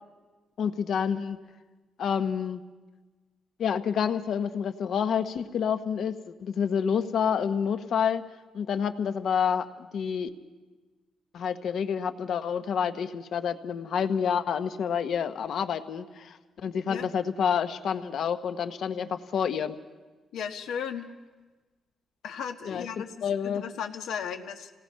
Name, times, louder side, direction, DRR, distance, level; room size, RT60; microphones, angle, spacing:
voice 1, 0.6-1.4 2.0-2.6 3.6-8.2 8.5-10.3 11.3-19.8 22.6-23.6, left 7 dB, 60° left, 10 dB, 1.1 m, -28 dB
voice 2, 20.3-21.1 22.2-24.7, left 7 dB, 90° left, 6 dB, 1.5 m, -36 dB
28.0 x 18.5 x 5.7 m, 1.3 s
cardioid pair, 155°, 0 cm